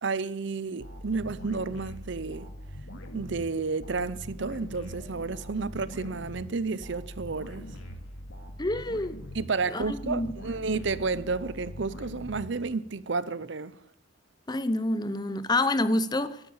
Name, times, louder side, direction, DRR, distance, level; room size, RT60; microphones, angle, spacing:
voice 1, 0.0-2.5 3.1-7.7 9.3-13.8, right 4 dB, 60° right, 0.7 m, -31 dB
sound 1, 0.8-13.1, equal, 70° left, 2.3 m, -42 dB
voice 2, 8.6-9.2 9.7-10.3 14.5-16.4, left 2 dB, 20° left, 0.8 m, -27 dB
12.5 x 12.5 x 8.7 m
head